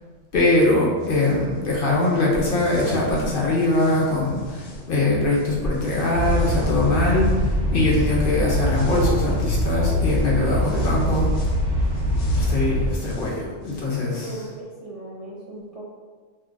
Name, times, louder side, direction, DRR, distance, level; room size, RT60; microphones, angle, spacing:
voice 1, 0.3-11.3 12.3-14.4, left 2 dB, 55° left, -4 dB, 0.8 m, -22 dB
sound 1, 1.0-1.5 2.0-4.9 5.3-9.6 10.0-10.3 10.6-13.8, left 2 dB, 80° left, 0.9 m, -40 dB
sound 2, 6.1-12.9, equal, 80° right, 1.2 m, -23 dB
voice 2, 14.0-15.8, right 1 dB, 45° right, -8 dB, 0.4 m, -38 dB
2.7 x 2.2 x 3.8 m, 1.5 s
omnidirectional pair, 1.2 m